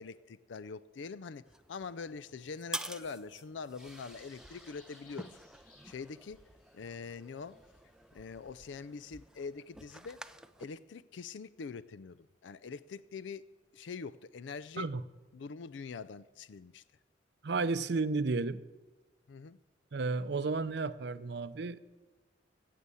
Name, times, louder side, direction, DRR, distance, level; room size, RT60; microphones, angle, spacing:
voice 1, 0.0-1.4 1.7-5.4 5.8-6.4 6.7-7.6 8.1-10.2 10.6-13.5 13.7-14.9 15.3-16.8 19.3-19.6, left 5 dB, 70° left, 0.4 m, -44 dB
sound 1, 1.5-10.7, right 1 dB, 5° right, 0.4 m, -48 dB
sound 2, 3.7-9.1, left 2 dB, 50° left, 5.4 m, -63 dB
voice 2, 17.4-18.6 19.9-21.8, right 3 dB, 60° right, 0.5 m, -32 dB
15.0 x 7.6 x 8.3 m
head